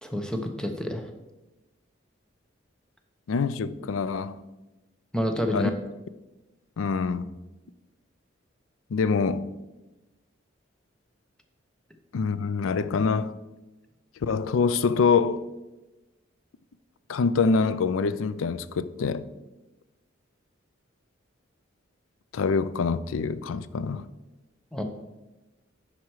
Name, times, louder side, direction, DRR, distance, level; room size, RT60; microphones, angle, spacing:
voice 1, 0.0-1.1 5.1-5.7 24.7-24.8, equal, 5° left, 0.7 m, -28 dB
voice 2, 3.3-4.4 5.5-5.7 6.8-7.3 8.9-9.5 12.1-13.3 14.2-15.4 17.1-19.3 22.3-24.1, left 5 dB, 90° left, 0.4 m, -25 dB
10.5 x 4.4 x 4.7 m
head